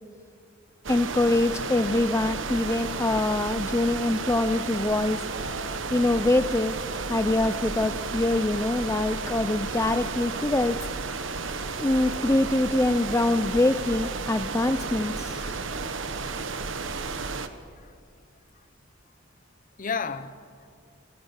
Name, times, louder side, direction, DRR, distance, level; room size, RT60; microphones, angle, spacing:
sound 1, 0.8-17.5, right 4 dB, 75° right, 1.1 m, -32 dB
voice 1, 0.9-5.2 5.9-6.7 7.1-10.8 11.8-15.6, left 2 dB, 15° left, 0.5 m, -24 dB
Acoustic guitar, 5.3-9.6 10.5-10.6, right 1 dB, 50° right, 2.5 m, -48 dB
voice 2, 19.8-20.7, left 5 dB, 45° left, 0.9 m, -35 dB
26.0 x 18.5 x 7.3 m
head